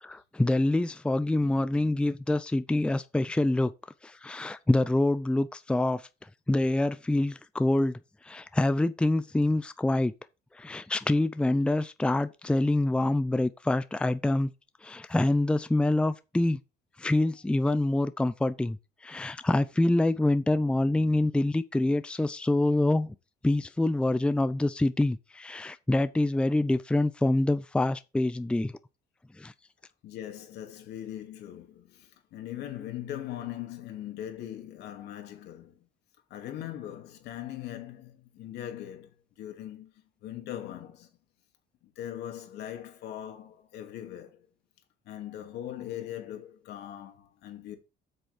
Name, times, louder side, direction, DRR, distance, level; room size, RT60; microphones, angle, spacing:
voice 1, 0.0-3.7 4.0-6.1 6.5-8.0 8.2-10.1 10.5-14.5 14.8-16.6 17.0-18.8 19.0-23.1 23.4-28.7 29.4-29.5, left 2 dB, 5° left, 0.5 m, -26 dB
voice 2, 30.0-35.8 36.3-39.9 40.2-41.1 41.8-44.5 45.1-47.8, left 11 dB, 75° left, 2.7 m, -40 dB
7.9 x 6.8 x 5.1 m
cardioid pair, 110°, 17 cm